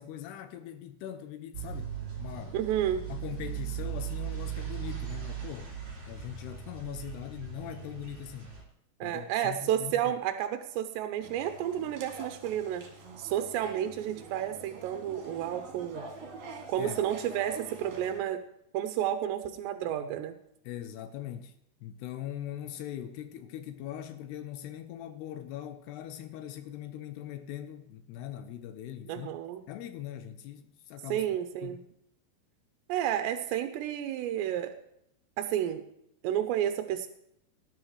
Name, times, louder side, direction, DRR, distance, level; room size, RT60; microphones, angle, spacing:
voice 1, 0.0-2.6 3.1-5.7 6.1-8.5 9.0-10.1 16.8-17.0 20.6-21.6 21.8-29.3 29.7-31.3 31.6-31.8, left 11 dB, 80° left, 2.8 m, -41 dB
sound 1, 1.5-8.6, right 10 dB, 40° right, 4.0 m, -38 dB
voice 2, 2.5-3.0 9.0-12.9 13.2-16.1 16.7-18.4 18.7-20.3 29.1-29.6 31.1-31.8 32.9-34.7 35.4-35.8 36.2-37.1, right 11 dB, 90° right, 2.9 m, -31 dB
sound 2, 11.2-18.2, right 3 dB, 60° right, 3.3 m, -45 dB
18.5 x 11.0 x 3.2 m
omnidirectional pair, 4.9 m